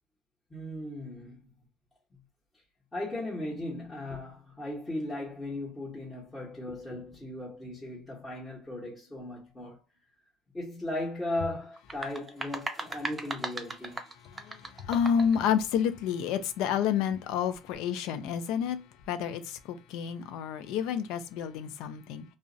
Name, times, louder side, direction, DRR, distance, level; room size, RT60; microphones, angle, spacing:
voice 1, 0.5-1.5 2.9-9.8 10.5-14.0, left 1 dB, 15° left, 1.0 m, -37 dB
sound 1, 11.8-15.4, right 2 dB, 20° right, 0.5 m, -38 dB
voice 2, 14.3-18.8 19.1-22.2, left 8 dB, 75° left, 0.4 m, -29 dB
2.3 x 2.0 x 2.5 m
supercardioid pair, 95°, 0 cm